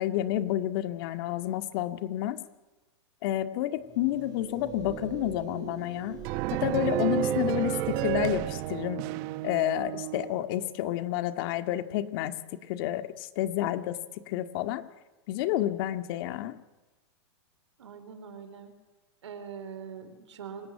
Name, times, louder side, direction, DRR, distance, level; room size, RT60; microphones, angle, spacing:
voice 1, 0.0-2.4 3.2-6.2 6.5-9.0 9.4-12.4 12.7-14.0 14.3-14.8 15.3-16.6, left 13 dB, 55° left, 9 dB, 2.0 m, -30 dB
sound 1, 3.9-8.5, right 6 dB, 25° right, 5.8 m, -36 dB
sound 2, 6.2-10.4, right 19 dB, 45° right, 0.8 m, -32 dB
voice 2, 17.8-18.7 19.2-20.7, right 6 dB, 85° right, 9 dB, 4.1 m, -43 dB
27.5 x 18.0 x 8.8 m, 1.1 s
hypercardioid pair, 125°, 15 cm